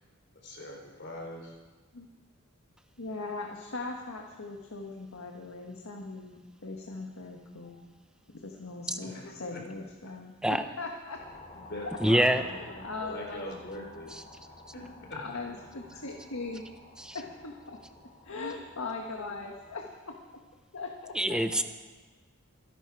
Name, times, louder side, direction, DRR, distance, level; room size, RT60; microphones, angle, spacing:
voice 1, 0.3-1.6 7.6-7.8 9.0-9.6 11.5-14.1 14.7-15.2 15.9-16.0 19.1-19.5, left 1 dB, 55° left, 0 dB, 3.8 m, -42 dB
voice 2, 3.0-7.8 8.3-11.2 11.8-11.9 12.2-13.4 15.1-16.7 17.1-17.8 18.2-19.9 20.3-20.4 20.7-21.4, left 3 dB, 80° left, 1 dB, 1.5 m, -40 dB
sound 1, 11.1-19.8, left 2 dB, 30° left, 2.5 m, -52 dB
voice 3, 12.0-12.4 17.0-17.2 21.1-21.6, right 1 dB, 5° right, 9 dB, 0.7 m, -25 dB
25.5 x 11.0 x 4.7 m, 1.3 s
head